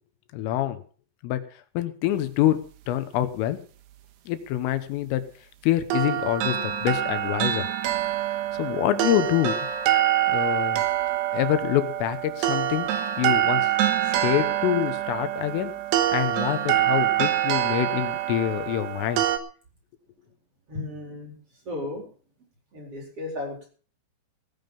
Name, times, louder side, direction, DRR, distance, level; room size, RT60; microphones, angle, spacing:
voice 1, 0.3-0.8 1.2-1.4 1.8-2.6 2.9-3.6 4.3-5.3 5.6-7.7 8.5-9.6 10.3-10.8 11.3-12.9 13.2-13.7 14.0-15.7 16.1-19.2, left 13 dB, 85° left, 11 dB, 3.8 m, -26 dB
sound 1, 5.9-19.4, right 12 dB, 70° right, 3.0 m, -25 dB
voice 2, 20.7-21.4 21.6-22.0 22.7-23.7, left 2 dB, 30° right, 1 dB, 4.7 m, -34 dB
18.0 x 9.4 x 5.4 m, 0.41 s
omnidirectional pair, 5.7 m